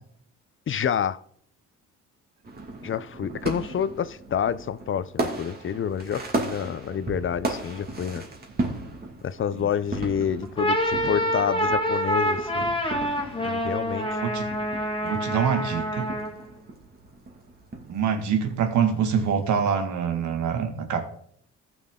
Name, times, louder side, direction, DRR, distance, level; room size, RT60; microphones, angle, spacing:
voice 1, 0.7-1.2 2.8-8.3 9.2-12.8 13.4-14.2, left 8 dB, 45° left, 0.6 m, -28 dB
sound 1, 2.4-19.9, right 2 dB, 30° right, 2.4 m, -36 dB
sound 2, 10.4-16.4, equal, 15° left, 2.2 m, -27 dB
voice 2, 14.2-14.5 15.0-16.1 17.9-21.0, right 7 dB, 75° right, 1.9 m, -25 dB
14.5 x 6.2 x 3.8 m
cardioid pair, 90°, 30 cm